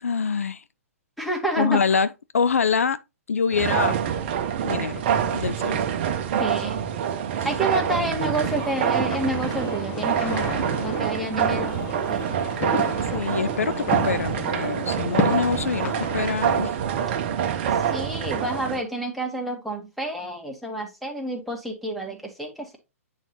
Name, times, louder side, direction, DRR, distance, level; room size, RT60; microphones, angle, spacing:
voice 1, 0.0-0.6 1.6-2.1 2.3-3.0 3.3-4.0 4.6-5.1 5.3-5.8 13.0-16.8, left 5 dB, 70° left, 0.4 m, -25 dB
voice 2, 1.2-1.8 6.4-6.8 7.4-12.4 17.9-22.8, right 1 dB, ahead, 1.6 m, -29 dB
sound 1, 3.5-18.8, right 8 dB, 40° right, 0.8 m, -26 dB
sound 2, 8.4-16.6, left 3 dB, 20° left, 1.2 m, -32 dB
8.9 x 4.1 x 2.8 m
figure-of-eight pair, 115°, 8 cm